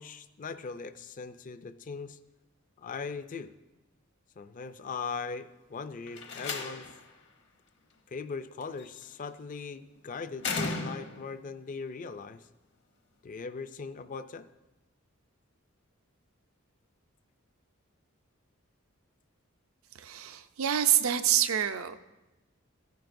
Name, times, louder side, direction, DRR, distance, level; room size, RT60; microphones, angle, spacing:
voice 1, 0.0-2.2 2.8-3.5 4.4-6.9 8.1-12.5 13.2-14.5, left 5 dB, 40° left, 12 dB, 0.4 m, -39 dB
Slam, 6.1-7.1 8.6-9.0 10.4-11.4, left 4 dB, 60° left, 1.0 m, -35 dB
voice 2, 20.0-22.0, right 10 dB, 85° right, 9 dB, 0.5 m, -27 dB
15.0 x 9.3 x 2.6 m, 1.1 s
head